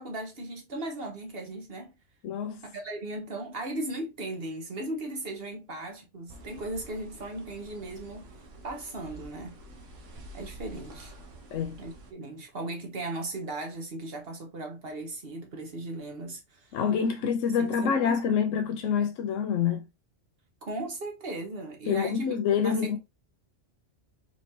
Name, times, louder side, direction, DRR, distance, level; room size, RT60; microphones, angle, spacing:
voice 1, 0.0-1.9 2.6-8.3 8.6-9.6 10.3-11.1 11.8-16.8 17.6-18.2 20.6-22.4 22.6-23.0, right 1 dB, 50° right, 1.4 m, -37 dB
voice 2, 2.2-2.6 11.5-11.8 16.7-19.8 21.9-23.0, left 7 dB, 85° left, 1.0 m, -27 dB
sound 1, 6.3-12.1, right 1 dB, 75° right, 1.2 m, -48 dB
4.4 x 3.1 x 2.8 m
omnidirectional pair, 1.3 m